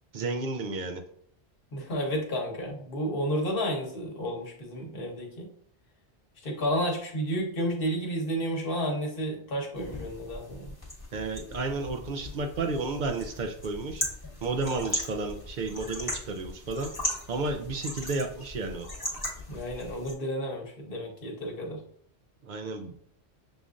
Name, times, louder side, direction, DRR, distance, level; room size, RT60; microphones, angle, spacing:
voice 1, 0.1-1.0 11.1-14.0 14.4-16.9 17.3-18.9 22.4-23.0, right 3 dB, 55° right, 6 dB, 0.6 m, -32 dB
voice 2, 1.7-5.5 6.4-10.7 19.5-21.8, equal, 55° left, 0 dB, 1.2 m, -31 dB
sound 1, 9.7-20.1, left 1 dB, 20° left, 1.4 m, -38 dB
6.9 x 2.5 x 2.5 m, 0.64 s
omnidirectional pair, 1.2 m